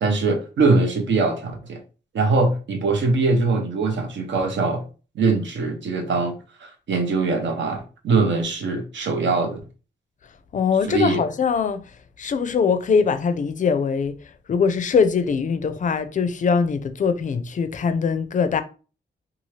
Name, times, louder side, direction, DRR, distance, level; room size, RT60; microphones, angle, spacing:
voice 1, 0.0-1.8 2.1-4.8 5.1-9.6 10.8-11.2, right 3 dB, 70° right, 0.7 m, -22 dB
voice 2, 10.5-11.8 12.2-14.1 14.5-18.6, left 6 dB, 40° left, 0.4 m, -22 dB
2.7 x 2.3 x 3.1 m
cardioid pair, 95°, 19 cm